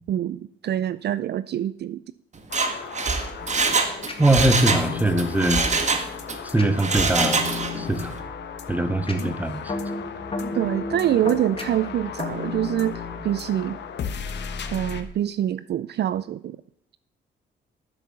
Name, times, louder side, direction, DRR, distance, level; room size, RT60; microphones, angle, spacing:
voice 1, 0.1-2.0 10.6-13.8 14.7-16.6, right 11 dB, 55° right, 16 dB, 0.5 m, -25 dB
Mechanisms, 2.4-4.9 5.2-6.4 6.8-7.8 8.1-8.2, right 4 dB, 35° right, 1.7 m, -24 dB
sound 1, 2.5-15.0, left 7 dB, 60° left, 1.3 m, -37 dB
sound 2, 3.4-14.0, left 4 dB, 25° left, 2.1 m, -35 dB
voice 2, 4.2-5.6 6.5-7.4 7.8-8.1 8.7-9.6, right 1 dB, 10° right, 9 dB, 1.4 m, -21 dB
10.5 x 7.1 x 7.3 m, 0.74 s
cardioid pair, 90°, 20 cm